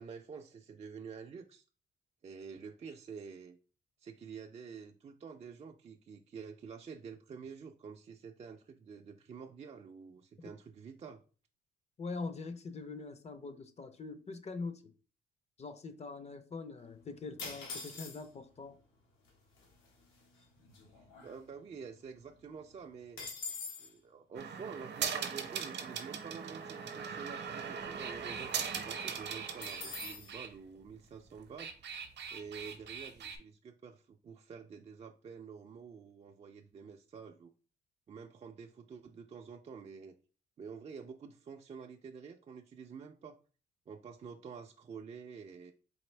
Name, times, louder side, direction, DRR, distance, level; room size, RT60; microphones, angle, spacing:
voice 1, 0.0-1.6 2.2-3.6 4.0-11.2 20.9-23.2 23.8-32.0 32.3-37.5 38.1-40.2 40.6-43.4 43.9-45.7, right 6 dB, 35° right, 0.4 m, -48 dB
voice 2, 12.0-14.9 15.6-18.8, left 4 dB, 35° left, 0.5 m, -43 dB
sound 1, 17.4-18.5 19.3-19.4 19.6-19.9 20.3-21.8 22.2-22.3 22.5-23.9 29.6-30.3, left 4 dB, 90° left, 1.2 m, -44 dB
sound 2, 24.3-30.5 31.4-33.4, right 7 dB, 60° right, 0.7 m, -40 dB
4.2 x 2.6 x 3.2 m
cardioid pair, 90°, 20 cm